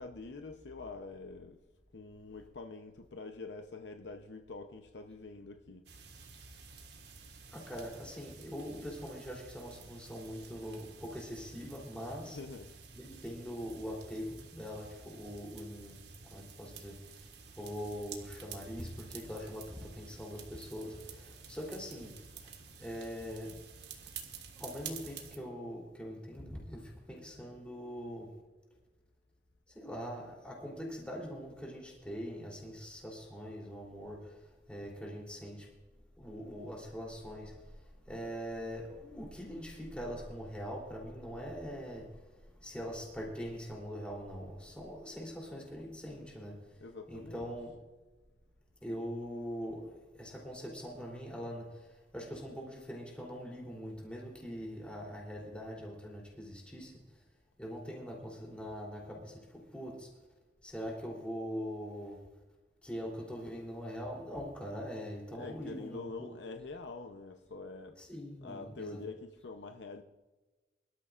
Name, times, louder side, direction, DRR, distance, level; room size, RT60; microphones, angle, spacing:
voice 1, 0.0-1.6 1.9-5.9 12.2-12.8 46.8-47.6 65.3-68.0 68.4-70.0, left 3 dB, 85° left, 0.8 m, -45 dB
sound 1, 5.9-25.4, right 6 dB, 75° right, 1.7 m, -51 dB
voice 2, 7.5-12.4 12.9-17.3 17.6-22.2 22.8-23.6 24.5-28.4 29.7-35.7 36.2-46.8 47.1-47.7 48.8-57.2 57.6-60.1 60.6-62.3 62.8-66.3 68.0-69.0, equal, 5° left, 3.2 m, -43 dB
24.0 x 12.5 x 2.5 m
head